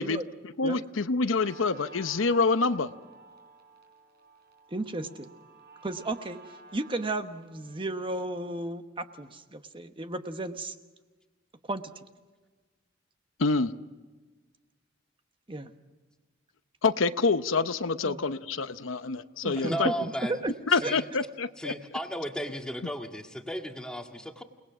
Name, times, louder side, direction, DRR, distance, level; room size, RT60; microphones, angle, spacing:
voice 1, 0.0-2.9 13.4-13.7 16.8-19.9 20.7-21.7, left 4 dB, 75° left, 11 dB, 0.8 m, -27 dB
Guitar, 1.3-8.3, right 4 dB, 55° right, 4.1 m, -53 dB
voice 2, 4.7-5.3 5.8-6.4 6.7-10.7 11.7-11.9 15.5-15.7 18.0-18.2 19.4-20.1 20.4-20.5 20.8-20.9, right 2 dB, 25° right, 8 dB, 1.1 m, -34 dB
voice 3, 19.5-20.4 20.8-21.0 21.6-24.4, equal, 5° left, 3 dB, 1.9 m, -35 dB
29.5 x 19.5 x 6.1 m, 1.3 s
head